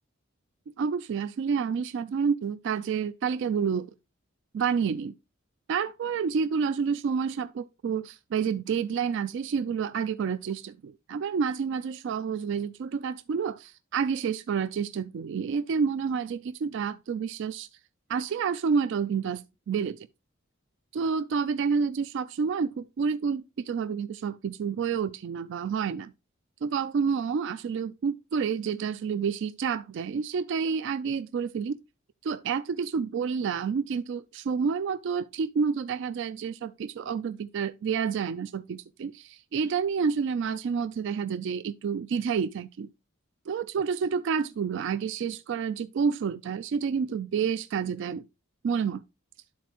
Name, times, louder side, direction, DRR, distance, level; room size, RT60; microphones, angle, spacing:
voice 1, 0.8-3.9 4.5-5.1 5.7-17.7 18.1-20.0 20.9-26.1 26.6-31.8 32.2-42.9 43.5-48.2 48.6-49.0, right 6 dB, 60° right, 0.3 m, -29 dB
12.0 x 4.1 x 2.9 m
head